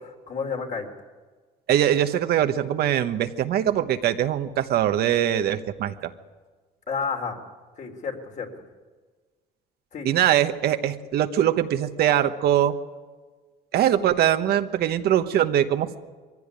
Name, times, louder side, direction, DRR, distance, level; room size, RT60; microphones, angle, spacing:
voice 1, 0.3-0.9 6.9-7.4 7.8-8.5 9.9-10.1, left 5 dB, 45° left, 3 dB, 3.6 m, -30 dB
voice 2, 1.7-6.1 10.0-12.7 13.7-16.0, right 11 dB, 70° right, 8 dB, 1.2 m, -22 dB
22.5 x 15.5 x 9.9 m, 1.4 s
cardioid pair, 110°, 17 cm